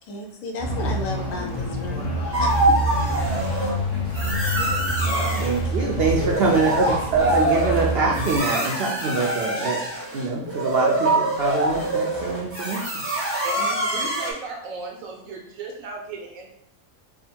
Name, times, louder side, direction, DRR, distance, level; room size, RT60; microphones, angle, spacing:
voice 1, 0.0-2.1 2.4-2.8 4.6-4.7 5.0-5.5 13.6-13.7, left 2 dB, 75° left, 2 dB, 1.1 m, -34 dB
sound 1, 0.6-8.4, right 1 dB, 35° left, 0.8 m, -27 dB
sound 2, 2.3-3.7 4.1-5.6 6.1-14.3, right 1 dB, 15° right, 0.6 m, -25 dB
voice 2, 5.4-9.8 10.1-12.9, right 3 dB, 60° right, -1 dB, 0.7 m, -24 dB
voice 3, 13.1-16.5, right 3 dB, 85° right, 1 dB, 1.2 m, -36 dB
3.6 x 2.1 x 4.3 m, 0.70 s
omnidirectional pair, 1.4 m